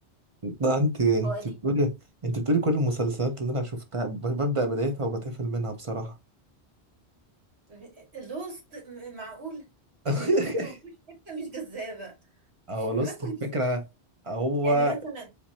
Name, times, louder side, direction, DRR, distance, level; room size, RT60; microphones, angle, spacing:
voice 1, 0.4-1.3 1.6-1.9 2.2-6.1 10.0-10.7 12.7-13.8 14.2-14.9, right 1 dB, 30° right, 0.9 m, -26 dB
voice 2, 7.7-9.7 10.0-10.7 11.2-12.2 12.8-13.4 14.6-15.3, right 3 dB, 70° right, 2.2 m, -38 dB
4.6 x 3.6 x 2.7 m
omnidirectional pair, 1.1 m